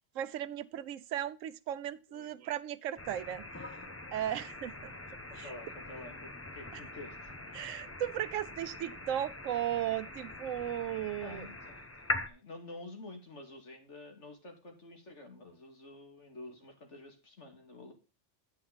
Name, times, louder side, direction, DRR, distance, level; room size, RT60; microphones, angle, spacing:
voice 1, 0.1-3.4 4.1-4.9 5.4-5.5 7.5-11.5, right 11 dB, 90° right, 1.0 m, -36 dB
sound 1, 3.0-12.3, left 2 dB, 15° left, 0.7 m, -42 dB
voice 2, 4.6-7.3 11.2-17.9, left 2 dB, 65° left, 2.6 m, -49 dB
9.3 x 5.8 x 5.1 m
omnidirectional pair, 1.3 m